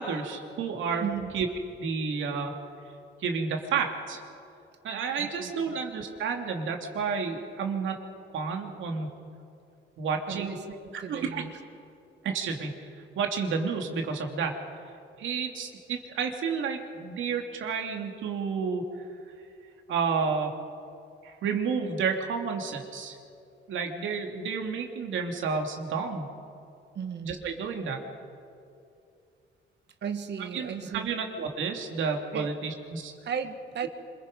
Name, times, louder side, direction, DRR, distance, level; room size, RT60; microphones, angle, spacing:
voice 1, 0.0-1.1 1.3-1.5 1.8-2.5 3.2-4.2 4.8-8.0 8.3-9.1 10.0-10.6 10.9-11.4 12.2-12.9 13.2-14.6 15.2-18.9 19.9-20.5 21.2-23.2 23.7-26.3 27.2-28.0 30.5-33.1, right 5 dB, 75° right, 3 dB, 2.8 m, -31 dB
voice 2, 1.0-1.3 5.2-5.8 10.3-11.5 27.0-27.4 30.0-31.1 32.3-32.5 33.3-33.9, right 7 dB, 60° right, 7 dB, 1.8 m, -35 dB
26.5 x 22.0 x 5.4 m, 2.5 s
cardioid pair, 90°, 20 cm